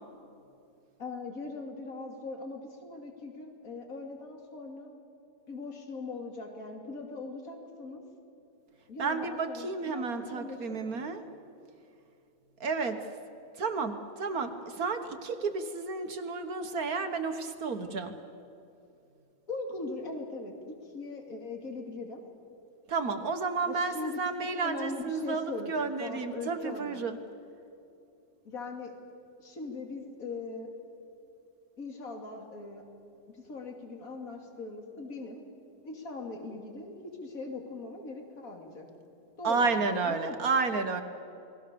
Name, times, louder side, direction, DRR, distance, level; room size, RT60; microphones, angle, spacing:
voice 1, 1.0-4.9 5.5-8.0 8.9-11.0 19.5-20.5 20.8-22.2 23.6-25.7 26.0-27.1 28.4-28.9 29.4-30.7 31.8-32.8 33.3-35.4 35.8-38.9 39.4-40.5, left 3 dB, 50° left, 3 dB, 3.0 m, -40 dB
voice 2, 9.0-11.2 12.6-13.0 13.6-18.1 22.9-27.2 39.4-41.0, right 4 dB, 55° right, 7 dB, 1.7 m, -31 dB
29.5 x 20.5 x 6.9 m, 2.7 s
omnidirectional pair, 1.9 m